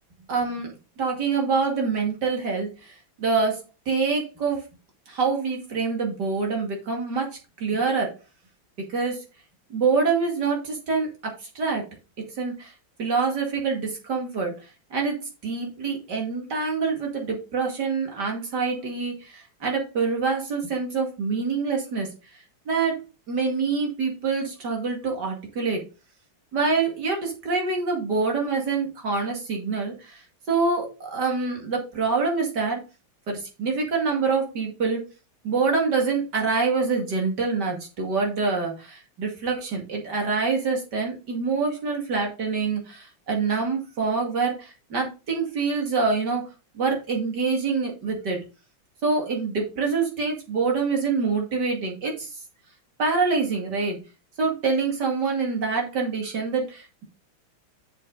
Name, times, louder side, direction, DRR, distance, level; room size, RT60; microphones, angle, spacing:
voice 1, 0.3-0.7 1.0-4.6 5.1-8.1 8.9-9.2 9.7-11.8 12.4-12.7 13.0-14.5 14.9-22.1 22.7-23.0 23.3-25.8 26.5-32.8 33.3-35.1 35.4-46.5 46.7-48.4 49.0-52.3 53.0-54.0 54.4-57.0, right 4 dB, 55° right, 1 dB, 2.8 m, -26 dB
7.4 x 6.7 x 3.9 m, 0.31 s
omnidirectional pair, 2.2 m